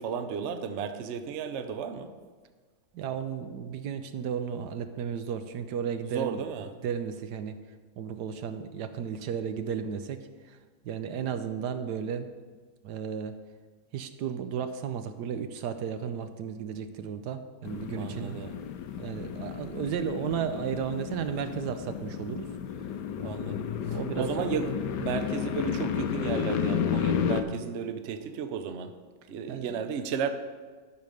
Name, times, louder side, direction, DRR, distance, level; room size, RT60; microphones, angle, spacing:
voice 1, 0.0-2.1 6.0-6.7 18.0-18.6 23.2-28.9 29.3-30.3, right 7 dB, 55° right, 9 dB, 0.8 m, -34 dB
voice 2, 2.9-6.4 6.8-7.6 8.0-10.6 10.8-12.3 12.8-13.4 13.9-18.5 18.9-22.5 23.9-24.5 29.5-29.8, right 7 dB, 75° right, 9 dB, 1.2 m, -34 dB
sound 1, 17.6-27.4, left 8 dB, 80° left, 1.3 m, -32 dB
11.5 x 5.3 x 6.5 m, 1.5 s
omnidirectional pair, 1.9 m